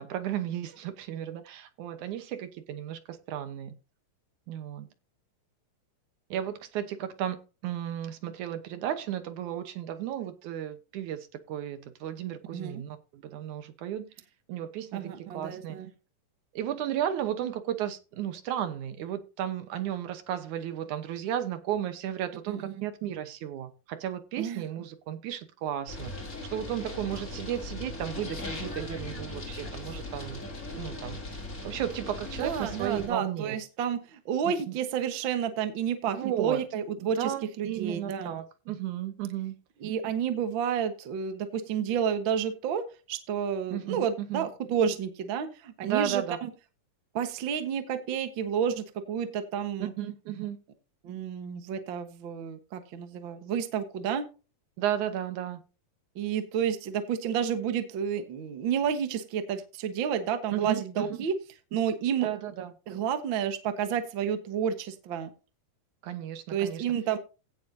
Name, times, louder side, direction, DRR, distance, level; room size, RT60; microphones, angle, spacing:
voice 1, 0.0-3.8 4.5-4.9 6.3-7.4 7.6-14.1 14.5-15.8 16.5-26.1 26.5-30.5 30.7-31.2 31.6-33.6 34.4-34.8 36.2-36.6 37.0-39.6 43.7-44.5 45.9-46.4 49.8-50.6 54.8-55.6 60.5-61.3 62.2-62.7 66.0-66.9, right 11 dB, 75° right, 2.3 m, -34 dB
voice 2, 14.9-15.9 22.5-22.8 24.4-24.6 32.4-38.3 39.8-46.5 47.1-49.9 51.0-54.2 56.1-61.3 61.7-62.3 62.9-65.3 66.5-67.2, right 8 dB, 55° right, 1.5 m, -30 dB
sound 1, 25.9-33.1, left 2 dB, 25° left, 3.7 m, -39 dB
16.5 x 7.2 x 2.7 m
omnidirectional pair, 3.7 m